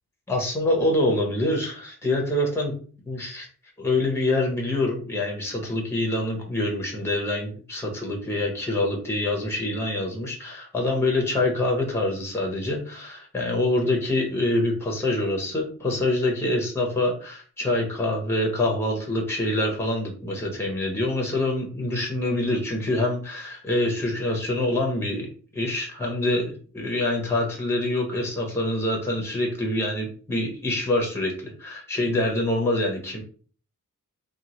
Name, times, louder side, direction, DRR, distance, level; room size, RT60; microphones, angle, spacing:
voice 1, 0.3-2.7 3.0-3.5 3.8-33.2, left 1 dB, 10° left, 0 dB, 0.7 m, -25 dB
2.9 x 2.3 x 2.9 m, 0.41 s
wide cardioid pair, 175°, 32 cm